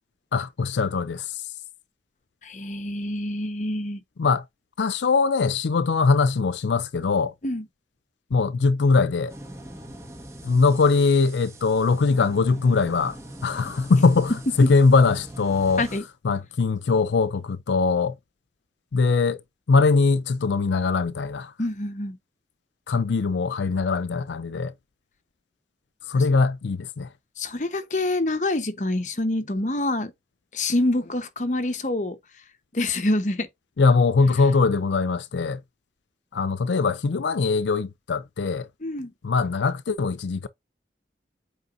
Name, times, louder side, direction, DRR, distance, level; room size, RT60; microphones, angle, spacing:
voice 1, 0.3-1.4 4.2-4.4 4.8-7.3 8.3-9.3 10.4-13.2 13.4-15.8 16.2-18.2 18.9-19.4 19.7-21.5 22.9-24.7 26.1-27.1 33.8-35.6 36.3-38.7 39.2-40.5, left 4 dB, 85° left, 0.5 m, -21 dB
voice 2, 2.4-4.0 7.4-7.6 14.6-14.7 15.8-16.0 21.6-22.2 27.4-30.1 30.5-32.2 32.7-33.5 38.8-39.1, left 1 dB, 45° left, 1.0 m, -26 dB
sound 1, 9.3-16.0, right 1 dB, 15° right, 1.4 m, -42 dB
8.1 x 4.8 x 2.6 m
head